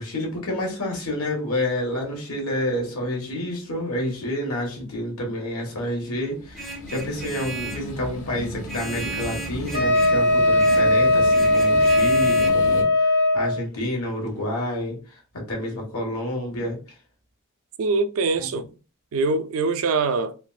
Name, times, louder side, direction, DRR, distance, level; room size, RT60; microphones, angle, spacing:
voice 1, 0.0-15.0 15.3-16.8 18.4-18.5, left 1 dB, 90° left, 1.3 m, -29 dB
sound 1, 6.3-12.8, equal, 70° left, 1.0 m, -36 dB
Vehicle horn car horn honking, 6.6-7.9 8.7-10.2 10.6-10.9 11.3-12.5, right 2 dB, ahead, 0.4 m, -35 dB
Wind instrument woodwind instrument, 9.7-13.6, left 1 dB, 50° left, 0.6 m, -19 dB
voice 2, 17.8-18.7 19.1-20.4, right 3 dB, 65° right, 0.4 m, -23 dB
3.3 x 2.4 x 2.4 m
head